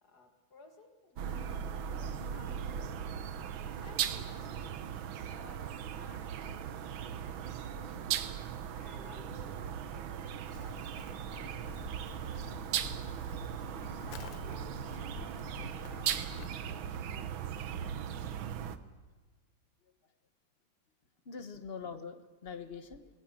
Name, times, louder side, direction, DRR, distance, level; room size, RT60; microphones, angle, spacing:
voice 1, 0.0-3.1 3.8-8.1 8.7-13.1 13.9-18.6, left 3 dB, 55° left, 5 dB, 2.3 m, -57 dB
sound 1, 1.2-18.8, right 8 dB, 80° right, 1.8 m, -38 dB
Livestock farm animals working animals, 10.5-16.5, left 8 dB, 75° left, 1.6 m, -49 dB
voice 2, 21.2-23.2, left 5 dB, 35° left, 11 dB, 1.1 m, -44 dB
24.5 x 20.0 x 7.5 m, 1.3 s
omnidirectional pair, 2.1 m